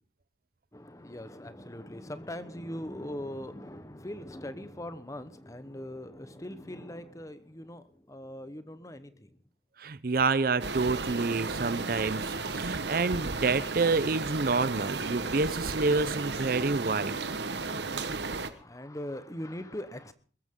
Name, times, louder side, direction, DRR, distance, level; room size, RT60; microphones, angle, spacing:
voice 1, 0.7-9.4 18.2-20.1, left 1 dB, 20° left, 12 dB, 1.0 m, -41 dB
voice 2, 9.8-17.1, right 3 dB, 55° right, 17 dB, 0.6 m, -28 dB
sound 1, 10.6-18.5, right 3 dB, 75° right, 1.3 m, -34 dB
21.0 x 14.5 x 3.8 m, 0.41 s
head